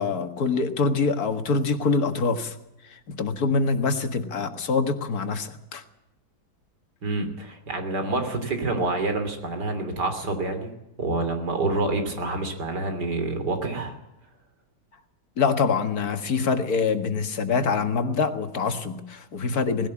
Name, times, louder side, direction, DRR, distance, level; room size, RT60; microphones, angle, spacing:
voice 1, 0.0-2.5 3.1-5.8 15.4-19.9, left 4 dB, 65° left, 7 dB, 2.1 m, -25 dB
voice 2, 7.0-10.7 11.0-14.0, right 2 dB, 85° right, 6 dB, 3.7 m, -27 dB
19.5 x 16.0 x 8.6 m, 0.89 s
omnidirectional pair, 1.8 m